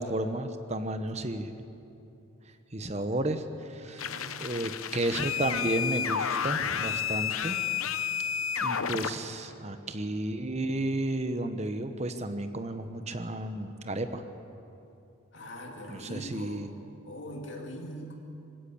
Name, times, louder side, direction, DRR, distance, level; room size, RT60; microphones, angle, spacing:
voice 1, 0.0-1.5 2.7-4.0 4.4-7.6 8.6-14.2 15.9-16.7, right 1 dB, 30° right, 9 dB, 1.0 m, -32 dB
voice 2, 3.8-4.5 15.3-16.7 17.0-18.1, equal, 60° left, 2 dB, 2.7 m, -42 dB
sound 1, 4.0-9.1, left 8 dB, 85° left, 0.8 m, -31 dB
20.5 x 16.5 x 8.7 m, 2.8 s
head